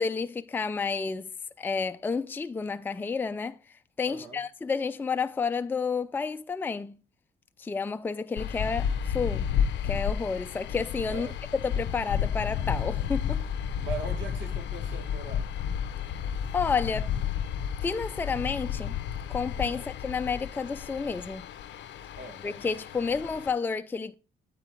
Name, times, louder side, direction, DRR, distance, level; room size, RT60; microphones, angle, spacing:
voice 1, 0.0-1.3 1.6-3.6 4.0-7.0 7.6-9.5 9.8-11.3 11.6-13.4 16.1-16.2 16.5-17.1 17.8-19.0 19.3-21.4 22.4-24.1, left 5 dB, 10° left, 0.3 m, -30 dB
voice 2, 4.1-4.4 11.1-11.4 13.8-15.4 19.7-19.9 22.2-22.4, right 3 dB, 70° right, 1.9 m, -40 dB
sound 1, 8.4-23.5, left 8 dB, 65° left, 0.5 m, -32 dB
8.2 x 3.9 x 4.4 m
cardioid pair, 90°, 20 cm